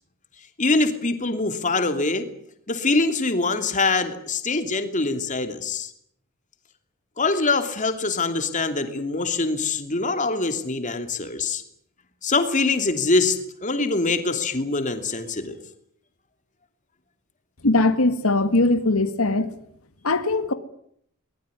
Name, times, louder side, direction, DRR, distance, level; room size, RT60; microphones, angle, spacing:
voice 1, 0.6-2.2 2.7-5.9 7.2-11.6 12.2-13.4 13.6-15.5, left 3 dB, 35° left, 8 dB, 2.9 m, -24 dB
voice 2, 17.6-19.5 20.0-20.5, left 2 dB, 90° left, 10 dB, 1.8 m, -20 dB
23.5 x 20.5 x 9.8 m, 0.68 s
head